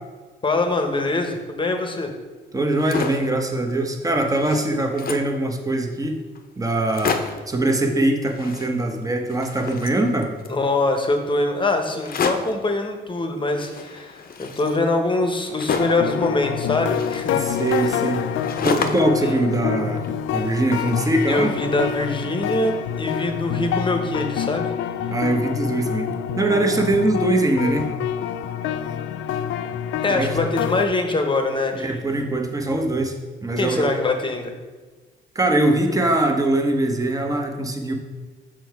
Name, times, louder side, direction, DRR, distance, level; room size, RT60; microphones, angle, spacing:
voice 1, 0.4-2.1 10.5-17.4 17.8-17.9 19.2-19.4 21.3-24.7 30.0-32.1 33.6-34.5, left 2 dB, 25° left, 5 dB, 0.9 m, -23 dB
voice 2, 2.5-6.2 6.6-7.2 7.5-10.3 17.4-18.3 18.6-20.0 20.3-21.5 25.1-26.1 26.4-27.9 30.1-30.3 31.7-33.9 35.3-37.9, right 2 dB, 15° right, 4 dB, 1.0 m, -22 dB
sound 1, 2.6-3.3 3.8-3.9 4.2-5.4 6.0-6.1 6.4-6.5 6.8-7.5 8.2-9.0 9.3-10.6 12.0-12.6 13.6-16.1 16.9-19.2 19.5-20.4, left 5 dB, 45° left, 0.7 m, -30 dB
sound 2, 15.8-30.9, left 8 dB, 75° left, 0.4 m, -27 dB
6.2 x 4.7 x 4.7 m, 1.3 s
cardioid pair, 90°, 20 cm